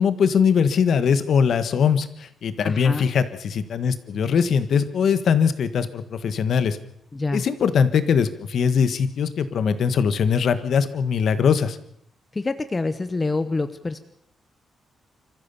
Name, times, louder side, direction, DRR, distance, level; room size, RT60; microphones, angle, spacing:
voice 1, 0.0-6.8 7.3-11.8, left 6 dB, 60° left, 12 dB, 1.4 m, -21 dB
voice 2, 2.6-3.1 7.1-7.4 12.3-14.0, left 3 dB, 20° left, 11 dB, 0.8 m, -26 dB
26.5 x 14.5 x 7.0 m, 0.73 s
wide cardioid pair, 160°, 0 cm